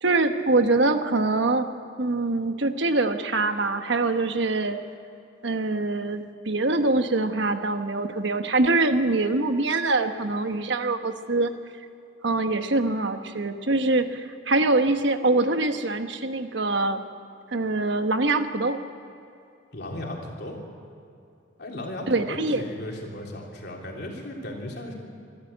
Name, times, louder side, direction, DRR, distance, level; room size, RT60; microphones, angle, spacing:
voice 1, 0.0-1.7 2.0-4.8 5.4-11.5 12.2-17.0 17.5-18.8 22.1-22.6, right 2 dB, 65° right, 8 dB, 1.2 m, -24 dB
voice 2, 19.7-20.6 21.6-24.9, left 1 dB, 55° left, -1 dB, 3.4 m, -36 dB
25.5 x 12.5 x 8.5 m, 2.6 s
head